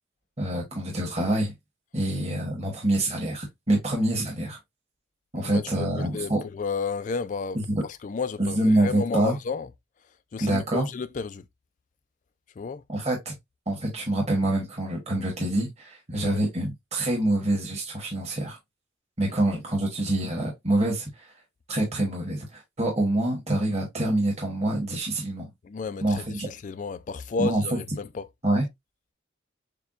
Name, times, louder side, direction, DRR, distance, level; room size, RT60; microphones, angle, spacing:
voice 1, 0.4-1.5 1.9-4.6 5.3-6.4 7.5-7.8 8.4-9.4 10.4-10.9 12.9-13.4 13.7-18.6 19.2-21.3 21.7-25.5 26.0-26.5 27.4-27.8 28.4-28.7, right 1 dB, 35° right, 1.2 m, -26 dB
voice 2, 5.4-7.6 8.0-9.7 10.3-11.4 12.6-12.8 16.1-16.4 19.2-19.4 25.6-28.3, left 4 dB, 40° left, 0.3 m, -32 dB
6.6 x 2.2 x 2.5 m
head